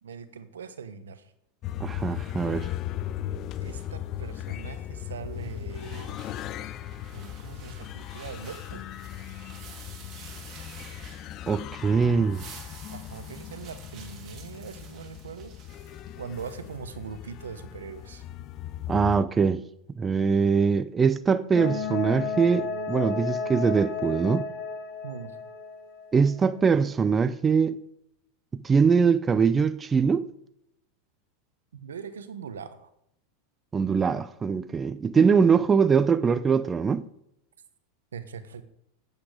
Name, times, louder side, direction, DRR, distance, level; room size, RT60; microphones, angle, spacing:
voice 1, 0.0-1.3 3.6-6.2 7.1-8.9 12.9-15.5 16.2-18.2 25.0-25.4 31.7-32.9 38.1-38.6, right 6 dB, 85° right, 1.0 m, -41 dB
sound 1, 1.6-19.2, left 12 dB, 45° left, 0.5 m, -38 dB
voice 2, 1.8-2.7 11.5-12.4 18.9-19.6 20.0-24.5 26.1-27.8 28.5-30.3 33.7-37.0, right 5 dB, 20° right, 0.5 m, -22 dB
sound 2, 5.3-11.7 12.1-16.8, right 6 dB, 40° right, 3.0 m, -50 dB
sound 3, 21.5-26.2, left 5 dB, 60° left, 2.8 m, -32 dB
8.6 x 8.5 x 4.9 m
hypercardioid pair, 100°, 0 cm